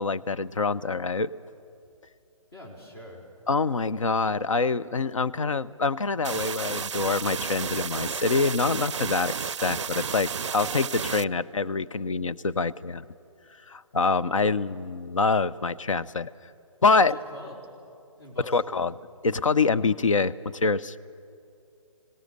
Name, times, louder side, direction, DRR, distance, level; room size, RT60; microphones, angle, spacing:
voice 1, 0.0-1.3 3.5-13.1 13.7-16.3 16.8-17.2 18.4-18.9 19.2-20.9, left 4 dB, 70° left, 13 dB, 0.6 m, -25 dB
voice 2, 2.5-3.2 16.9-17.8 18.2-18.8, equal, 45° left, -1 dB, 4.3 m, -44 dB
sound 1, 6.2-11.2, right 6 dB, 60° right, 0.4 m, -32 dB
24.0 x 18.0 x 6.6 m, 2.6 s
figure-of-eight pair, 140°, 17 cm